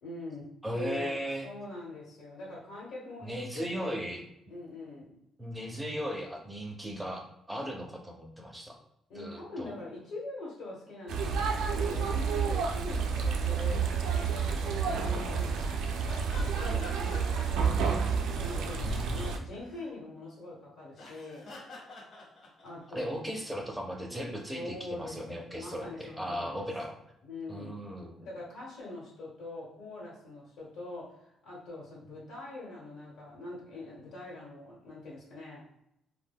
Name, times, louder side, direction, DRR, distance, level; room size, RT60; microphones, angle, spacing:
voice 1, 0.0-4.1 4.5-5.1 9.1-15.8 16.2-18.1 18.4-21.5 22.6-23.1 24.5-26.6 27.2-35.8, left 2 dB, 80° left, -6 dB, 1.0 m, -43 dB
voice 2, 0.6-1.5 3.2-4.2 5.4-8.8 9.1-9.7 18.8-19.3 22.9-27.0 27.5-28.1, equal, 5° right, 1 dB, 0.4 m, -37 dB
sound 1, 11.1-19.4, right 5 dB, 90° right, 0.3 m, -30 dB
sound 2, 14.1-14.3 14.6-15.2 15.5-17.7 18.1-18.8 19.2-19.9 20.9-22.9 24.3-24.9, left 2 dB, 55° left, 0.8 m, -49 dB
2.2 x 2.1 x 3.4 m, 0.80 s
cardioid pair, 150°, 0 cm